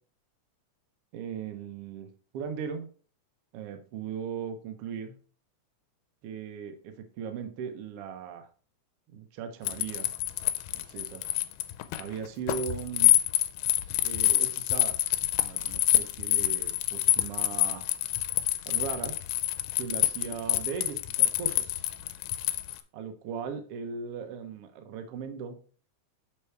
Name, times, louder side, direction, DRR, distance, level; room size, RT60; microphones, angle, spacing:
voice 1, 1.1-2.9 3.5-5.2 6.2-8.5 9.1-10.1 10.7-11.2 12.0-13.1 14.0-15.0 15.4-17.8 18.7-19.2 19.8-21.8 22.9-25.6, right 6 dB, 85° right, 7 dB, 1.3 m, -38 dB
sound 1, 9.7-22.8, left 15 dB, 90° left, 2.2 m, -27 dB
6.7 x 4.5 x 4.5 m, 0.41 s
omnidirectional pair, 3.7 m